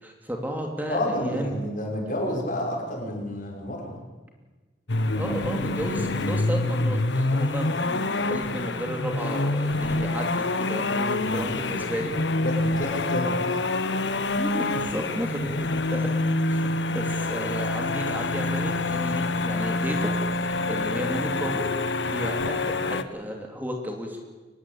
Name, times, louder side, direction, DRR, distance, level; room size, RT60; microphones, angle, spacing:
voice 1, 0.0-1.6 5.1-12.1 14.4-16.1 16.5-21.7 22.0-24.2, equal, 10° right, 2 dB, 2.8 m, -33 dB
voice 2, 0.9-3.9 11.2-11.7 12.4-13.6, left 1 dB, 50° left, 0 dB, 6.1 m, -30 dB
sound 1, 4.9-23.0, left 2 dB, 80° left, 1.3 m, -26 dB
24.5 x 19.5 x 8.5 m, 1.3 s
head